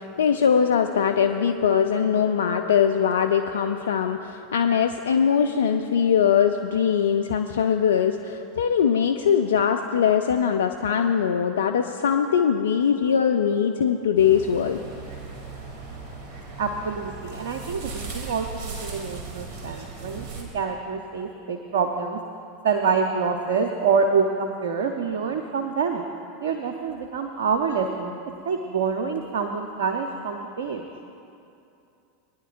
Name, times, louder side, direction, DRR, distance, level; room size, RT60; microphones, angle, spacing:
voice 1, 0.0-14.8, left 7 dB, 75° left, 6 dB, 0.4 m, -21 dB
sound 1, 14.2-20.4, right 4 dB, 45° right, 3.0 m, -37 dB
voice 2, 16.6-22.2 22.6-26.0 26.4-28.1 28.4-30.8, right 5 dB, 70° right, 5 dB, 0.7 m, -26 dB
21.5 x 10.0 x 2.6 m, 2.7 s
figure-of-eight pair, 85°, 0 cm